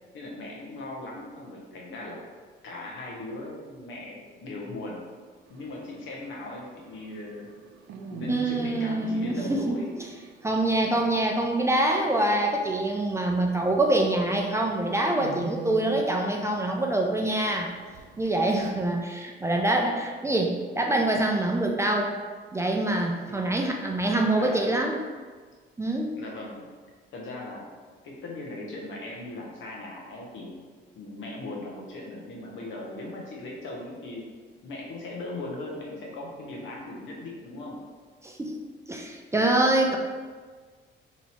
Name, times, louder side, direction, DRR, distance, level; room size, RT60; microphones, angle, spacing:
voice 1, 0.1-2.2 2.6-5.1 5.5-7.5 8.1-10.0 24.0-24.8 26.2-26.7 27.1-27.7 28.0-30.5 30.9-34.3 34.6-37.8, left 2 dB, 75° left, -2 dB, 0.9 m, -38 dB
sound 1, 5.5-18.9, right 4 dB, 75° right, 0.5 m, -44 dB
voice 2, 8.3-10.1 10.4-17.7 18.2-22.1 22.5-25.0 25.8-26.2 38.2-38.6 38.9-40.0, right 1 dB, 15° right, 1 dB, 0.4 m, -25 dB
3.0 x 2.7 x 4.2 m, 1.5 s
cardioid pair, 90°, 20 cm